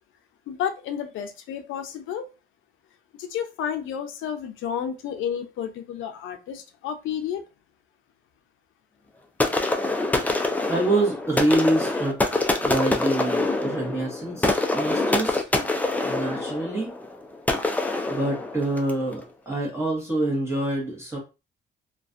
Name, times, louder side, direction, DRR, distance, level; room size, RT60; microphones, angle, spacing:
voice 1, 0.5-2.2 3.2-7.4, left 8 dB, 85° left, 7 dB, 0.5 m, -31 dB
sound 1, 9.4-19.0, left 2 dB, 10° left, 0.4 m, -25 dB
voice 2, 10.7-12.2 12.6-15.5 16.1-16.9 18.1-21.2, right 1 dB, 15° right, -4 dB, 1.0 m, -26 dB
2.4 x 2.2 x 2.5 m, 0.28 s
cardioid pair, 90°, 20 cm